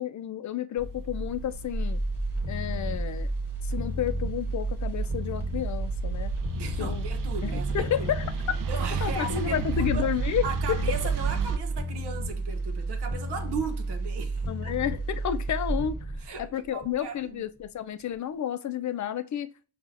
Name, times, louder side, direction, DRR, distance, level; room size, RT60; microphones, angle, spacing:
voice 1, 0.0-2.0 2.5-3.3 3.6-6.3 6.8-7.0 7.4-8.3 9.0-10.8 14.5-16.0 16.4-19.5, left 10 dB, 50° left, 0.5 m, -31 dB
sound 1, 0.8-11.6, right 3 dB, 55° right, 0.6 m, -33 dB
sound 2, 1.2-17.3 17.6-17.7, right 2 dB, 5° right, 1.2 m, -32 dB
voice 2, 6.5-8.1 8.7-10.1 10.4-14.7 16.2-17.4, right 4 dB, 85° right, 0.9 m, -37 dB
5.5 x 2.5 x 2.5 m
cardioid pair, 100°, 39 cm